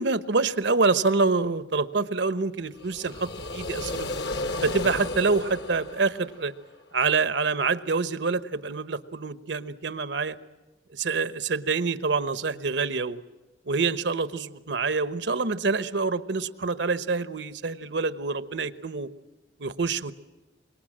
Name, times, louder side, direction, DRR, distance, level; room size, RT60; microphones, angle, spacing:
voice 1, 0.0-4.1 4.6-6.5 6.9-10.4 10.9-13.2 13.7-19.1 19.6-20.1, right 4 dB, 85° right, 14 dB, 1.1 m, -26 dB
sound 1, 2.7-6.8, left 2 dB, 70° left, 1.3 m, -33 dB
25.5 x 22.5 x 7.5 m, 1.2 s
head